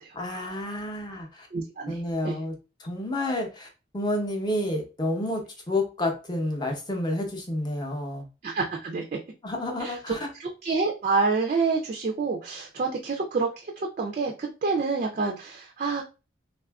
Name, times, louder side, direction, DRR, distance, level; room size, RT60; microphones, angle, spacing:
voice 1, 0.1-1.5 1.9-3.7 3.9-5.4 5.7-8.2 9.4-10.3, left 1 dB, 20° left, 2 dB, 0.6 m, -30 dB
voice 2, 1.5-2.4 8.4-9.0 9.8-10.1 10.4-16.0, right 4 dB, 40° right, 2 dB, 0.3 m, -28 dB
3.3 x 2.4 x 2.2 m, 0.31 s
head